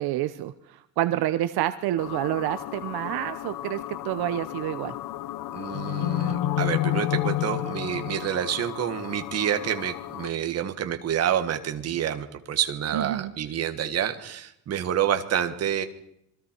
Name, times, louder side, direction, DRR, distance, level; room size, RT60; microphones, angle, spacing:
voice 1, 0.0-4.9 12.9-13.3, right 14 dB, 70° right, 11 dB, 0.8 m, -28 dB
sound 1, 2.0-10.3, left 14 dB, 55° left, 0.7 m, -31 dB
voice 2, 5.5-15.8, right 9 dB, 40° right, 8 dB, 1.5 m, -28 dB
27.0 x 21.5 x 4.5 m, 0.76 s
cardioid pair, 180°, 39 cm